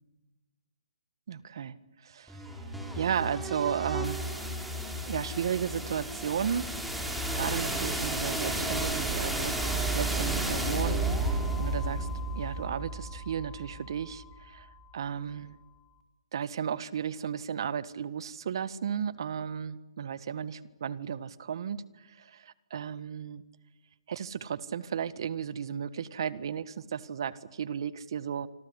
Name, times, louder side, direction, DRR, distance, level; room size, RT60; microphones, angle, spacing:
voice 1, 1.3-2.7 2.9-4.5 5.0-6.7 6.9-7.0 7.3-9.6 9.9-12.1 12.3-15.6 16.3-23.4 24.1-28.5, right 8 dB, 60° right, 16 dB, 1.6 m, -34 dB
sound 1, 2.3-14.2, right 1 dB, ahead, 4.7 m, -32 dB
26.5 x 26.0 x 8.3 m, 1.1 s
hypercardioid pair, 145°, 3 cm